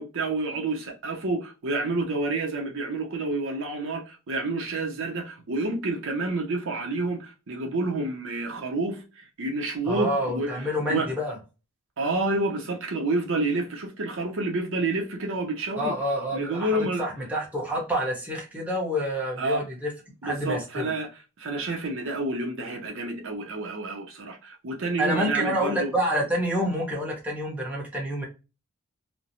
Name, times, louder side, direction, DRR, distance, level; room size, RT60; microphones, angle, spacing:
voice 1, 0.0-11.1 12.0-16.0 16.3-17.0 19.4-19.6 20.2-25.9, right 2 dB, 60° right, 0.7 m, -29 dB
voice 2, 9.8-11.4 15.8-19.9 20.2-20.9 25.0-28.2, equal, 5° right, 0.9 m, -28 dB
3.1 x 2.0 x 2.6 m
head